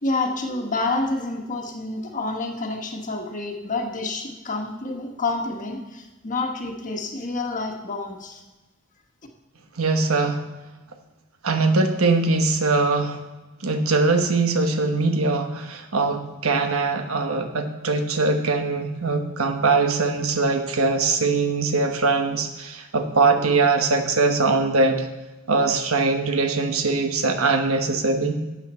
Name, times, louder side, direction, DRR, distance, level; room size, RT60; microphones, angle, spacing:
voice 1, 0.0-8.4, left 3 dB, 40° left, 2 dB, 1.4 m, -28 dB
voice 2, 9.8-10.4 11.4-13.2 13.6-25.1 25.5-28.4, right 3 dB, 80° right, 6 dB, 1.2 m, -22 dB
12.5 x 8.2 x 4.3 m, 1.1 s
head